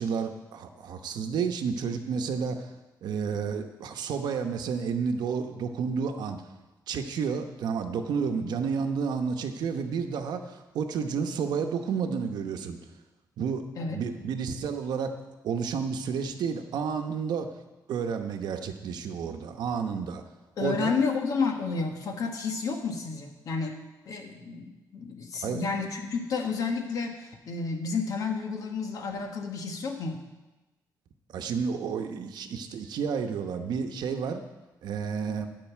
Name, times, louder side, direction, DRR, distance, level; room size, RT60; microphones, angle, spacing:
voice 1, 0.0-2.7 3.0-6.4 6.9-12.8 13.4-15.2 15.4-17.5 17.9-20.2 20.6-20.9 25.4-25.6 31.3-34.4 34.8-35.5, right 6 dB, 80° right, 6 dB, 0.9 m, -31 dB
voice 2, 20.6-23.7 24.0-30.2, left 4 dB, 55° left, 3 dB, 1.4 m, -31 dB
10.5 x 5.4 x 8.3 m, 1.1 s
wide cardioid pair, 165°, 7 cm